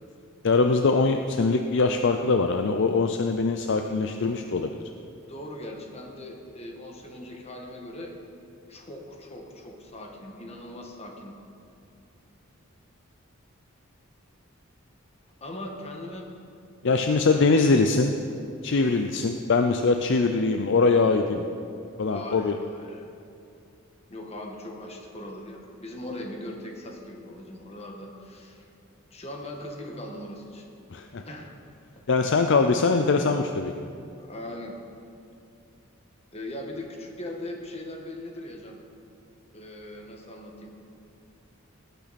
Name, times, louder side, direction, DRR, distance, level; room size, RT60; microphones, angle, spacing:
voice 1, 0.4-4.8 16.8-18.1 18.6-21.5 22.0-22.6 30.9-31.2 32.1-33.7, left 4 dB, 60° left, 6 dB, 0.5 m, -22 dB
voice 2, 5.3-8.1 8.7-11.3 15.4-16.3 17.3-17.6 22.0-23.0 24.1-28.7 29.1-30.7 31.2-31.5 34.2-34.7 36.3-38.8 39.5-40.7, left 1 dB, 30° left, 2 dB, 1.5 m, -40 dB
18.0 x 9.1 x 4.2 m, 2.6 s
head